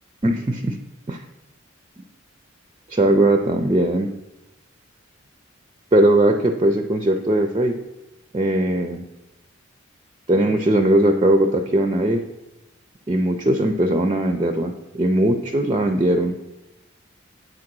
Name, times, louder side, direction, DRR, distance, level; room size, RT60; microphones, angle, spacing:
voice 1, 0.2-0.8 1.1-1.2 2.9-4.1 5.9-7.8 8.3-9.1 10.3-12.3 13.1-16.4, right 1 dB, 25° right, 6 dB, 0.4 m, -19 dB
7.9 x 3.8 x 6.0 m, 1.0 s
head